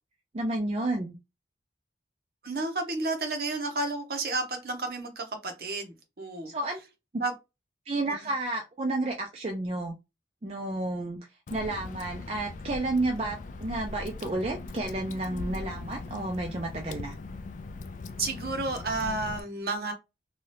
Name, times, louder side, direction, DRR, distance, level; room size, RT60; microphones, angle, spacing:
voice 1, 0.3-1.2 6.5-6.8 7.9-10.0 10.4-11.2 11.5-17.1, right 2 dB, 35° right, 0.4 m, -31 dB
voice 2, 2.4-6.5 7.2-7.3 18.2-19.9, right 2 dB, 55° right, 0.8 m, -31 dB
Water / Drip, 11.5-19.4, left 3 dB, 45° left, 0.3 m, -40 dB
2.7 x 2.3 x 3.2 m
head